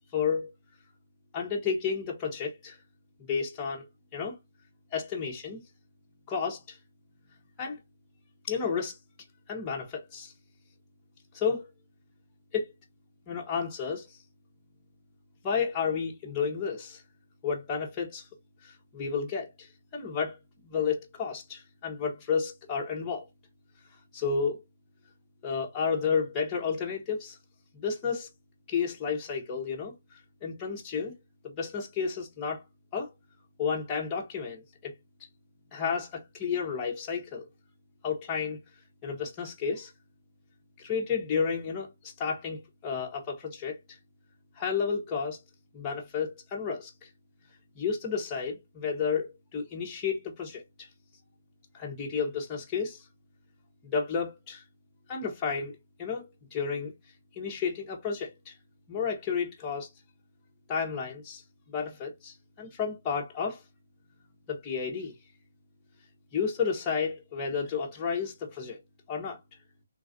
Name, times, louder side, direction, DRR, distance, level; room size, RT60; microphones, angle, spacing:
voice 1, 0.1-0.5 1.3-2.8 3.3-3.9 4.1-4.3 4.9-5.6 6.3-6.8 7.6-7.8 8.5-9.0 9.5-10.3 11.3-11.7 12.5-12.7 13.3-14.2 15.4-17.0 17.4-18.3 18.6-20.4 20.6-23.2 24.1-24.6 25.4-27.4 27.7-28.3 28.7-29.9 30.4-31.1 31.6-32.6 32.9-33.1 33.6-34.9 35.7-37.5 38.0-38.6 39.0-39.9 40.8-43.8 44.6-45.4 45.7-47.1 47.8-50.9 51.7-53.0 53.8-54.6 55.1-56.9 57.3-58.5 58.9-59.9 60.7-61.4 61.7-63.6 64.5-65.1 66.3-68.8 69.1-69.4, left 6 dB, 15° left, 0.7 m, -31 dB
3.1 x 2.3 x 2.5 m
hypercardioid pair, 165°, 0 cm